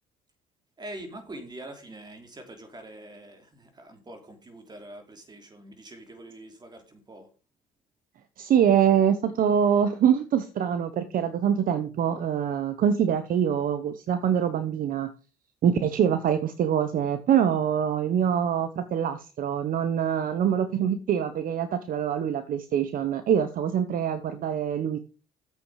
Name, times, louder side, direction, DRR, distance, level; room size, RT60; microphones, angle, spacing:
voice 1, 0.8-7.3, right 1 dB, 25° right, 6 dB, 3.2 m, -44 dB
voice 2, 8.4-15.1 15.6-25.0, right 8 dB, 55° right, 10 dB, 1.0 m, -24 dB
8.1 x 8.1 x 4.9 m, 0.35 s
cardioid pair, 110°, 17 cm